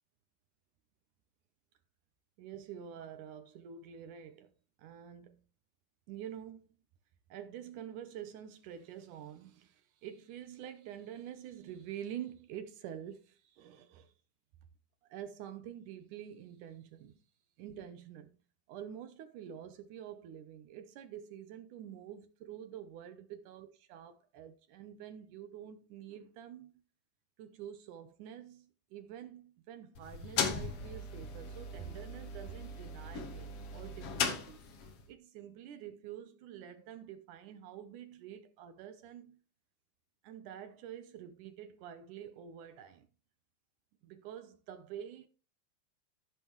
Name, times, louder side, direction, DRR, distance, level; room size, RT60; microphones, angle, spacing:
voice 1, 2.4-4.5 4.8-5.4 6.1-6.7 7.3-14.1 15.1-17.2 17.6-18.3 18.7-26.7 27.4-34.6 35.1-39.4 40.2-43.1 44.0-45.3, right 9 dB, 75° right, 1.9 m, -47 dB
sound 1, 29.9-35.0, left 5 dB, 80° left, 1.3 m, -38 dB
16.0 x 5.4 x 3.1 m
omnidirectional pair, 4.5 m